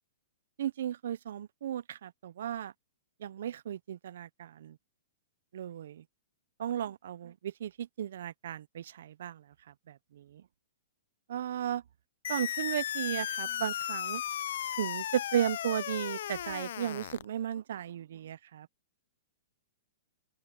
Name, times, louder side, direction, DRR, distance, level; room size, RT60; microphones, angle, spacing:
voice 1, 0.6-2.7 3.2-4.8 5.5-6.0 6.6-9.4 9.9-10.4 11.3-11.8 12.3-14.2 14.8-18.7, right 10 dB, 65° right, 0.4 m, -35 dB
sound 1, 12.2-17.2, left 11 dB, 60° left, 0.3 m, -35 dB
open air
hypercardioid pair, 165°, 0 cm